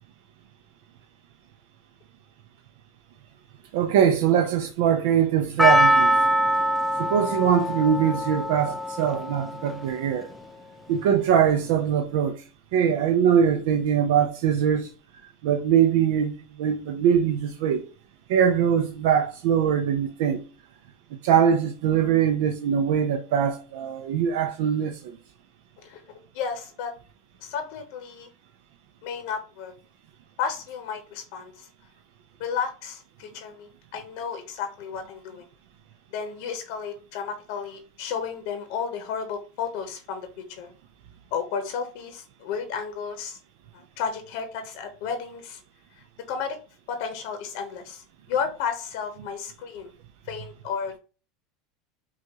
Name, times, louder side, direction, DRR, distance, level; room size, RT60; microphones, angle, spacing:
voice 1, 3.7-6.2 7.0-10.3 10.9-12.4 12.7-14.9 15.4-17.9 18.3-20.4 21.2-25.2, right 8 dB, 75° right, 0.5 m, -22 dB
Percussion, 5.6-10.0 10.2-10.3, equal, ahead, 0.4 m, -23 dB
voice 2, 25.8-26.9 27.4-28.3 29.0-29.7 30.4-31.7 32.4-35.5 36.1-40.7 41.3-43.4 43.7-45.6 46.3-46.6 46.9-49.9 50.3-51.0, left 6 dB, 65° left, 0.8 m, -33 dB
5.8 x 2.4 x 2.8 m
supercardioid pair, 145°, 0 cm